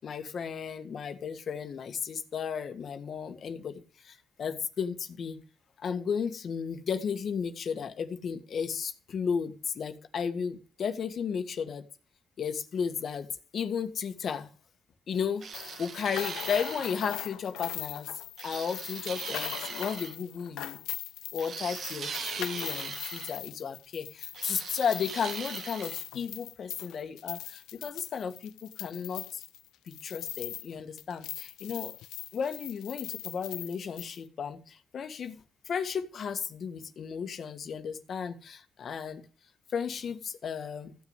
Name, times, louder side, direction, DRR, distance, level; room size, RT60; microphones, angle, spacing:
voice 1, 0.0-5.4 5.8-11.8 12.4-13.3 13.5-14.5 15.1-15.5 15.8-18.1 18.4-20.8 21.3-29.4 29.9-31.9 32.3-35.4 35.7-39.3 39.7-41.0, left 6 dB, 55° left, 1.8 m, -34 dB
sound 1, 15.4-17.1 18.4-20.2 21.4-23.4 24.3-26.0, right 6 dB, 60° right, 2.0 m, -40 dB
sound 2, 15.5-30.7 31.0-34.2, left 14 dB, 90° left, 0.6 m, -40 dB
15.5 x 6.3 x 9.8 m
cardioid pair, 90°, 0 cm